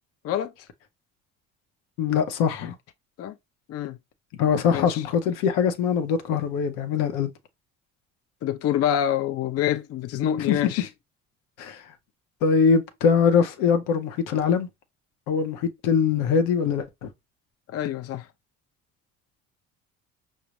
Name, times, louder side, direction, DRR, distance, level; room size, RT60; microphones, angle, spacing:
voice 1, 2.0-2.7 4.4-7.3 10.4-10.6 11.6-11.8 12.4-14.7 15.3-17.1, left 6 dB, 80° left, 0.7 m, -22 dB
voice 2, 4.7-5.0 8.4-10.9 17.7-18.3, left 10 dB, 50° left, 0.5 m, -26 dB
5.0 x 2.0 x 2.9 m
supercardioid pair, 70°, 32 cm